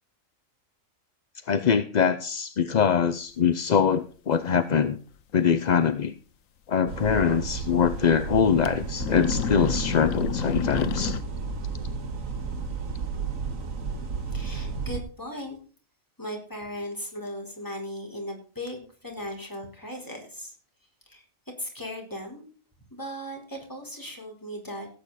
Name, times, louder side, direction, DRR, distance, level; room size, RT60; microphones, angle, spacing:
voice 1, 1.5-5.0 5.3-6.1 6.7-11.2, left 7 dB, 45° left, 12 dB, 0.6 m, -23 dB
sound 1, 5.1-5.2 5.5-5.6 7.1-7.2 7.5-7.6 8.5-8.7 9.0-11.2, left 8 dB, 80° left, 1.2 m, -30 dB
sound 2, 6.9-15.0, right 5 dB, 80° right, 1.9 m, -32 dB
voice 2, 14.3-15.6 16.2-20.5 21.1-21.2 21.6-22.4 22.9-24.9, equal, 15° left, 0 dB, 4.3 m, -37 dB
17.0 x 8.6 x 4.1 m, 0.39 s
omnidirectional pair, 1.4 m